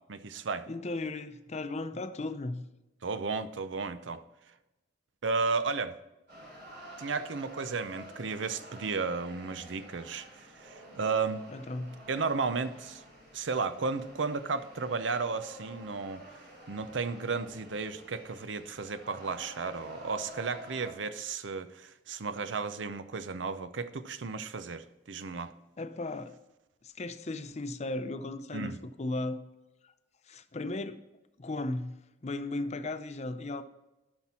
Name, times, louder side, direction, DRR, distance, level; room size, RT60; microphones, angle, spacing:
voice 1, 0.1-0.7 3.0-4.2 5.2-5.9 7.0-11.4 12.1-13.0 13.3-16.2 16.7-25.5 28.5-28.8, right 4 dB, 85° right, 12 dB, 0.6 m, -34 dB
voice 2, 0.7-2.7 11.5-12.0 25.8-26.3 26.8-29.4 30.3-31.0 31.4-32.0 32.2-33.6, left 2 dB, 40° left, 11 dB, 0.6 m, -36 dB
sound 1, 6.3-20.9, equal, 65° right, 3.9 m, -49 dB
12.0 x 5.9 x 4.3 m, 1.0 s
head